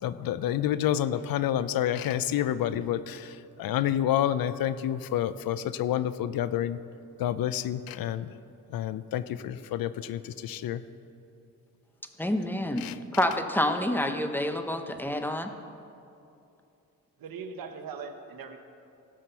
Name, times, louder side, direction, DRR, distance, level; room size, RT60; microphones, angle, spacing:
voice 1, 0.0-6.8 7.2-8.3 8.7-10.8 12.8-13.0, left 11 dB, 85° left, 14 dB, 0.6 m, -29 dB
voice 2, 12.2-12.8 13.1-15.5, left 1 dB, 5° left, 6 dB, 0.8 m, -28 dB
voice 3, 17.2-18.6, right 5 dB, 85° right, 6 dB, 1.1 m, -40 dB
17.0 x 5.8 x 6.8 m, 2.6 s
cardioid pair, 105°, 34 cm